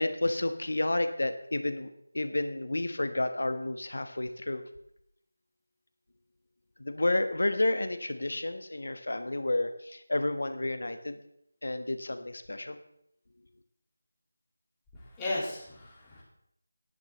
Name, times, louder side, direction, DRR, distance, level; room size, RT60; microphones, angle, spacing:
voice 1, 0.0-1.9 2.1-4.6 6.8-11.2 11.6-12.8, left 2 dB, 75° left, 8 dB, 1.4 m, -30 dB
voice 2, 14.9-16.2, left 2 dB, 10° left, -8 dB, 2.4 m, -35 dB
15.0 x 10.5 x 3.3 m, 0.74 s
figure-of-eight pair, 175°, 0 cm